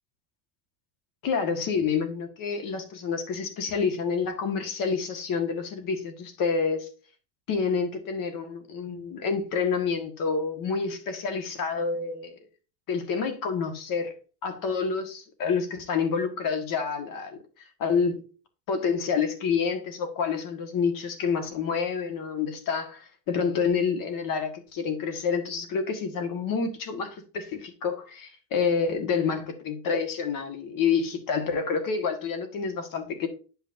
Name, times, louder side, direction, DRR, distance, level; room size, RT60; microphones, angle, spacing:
voice 1, 1.2-6.9 7.5-12.4 12.9-14.1 14.4-17.4 17.8-18.2 18.7-33.3, left 5 dB, 45° left, 1.6 m, -28 dB
9.5 x 5.9 x 2.6 m
cardioid pair, 160°, 46 cm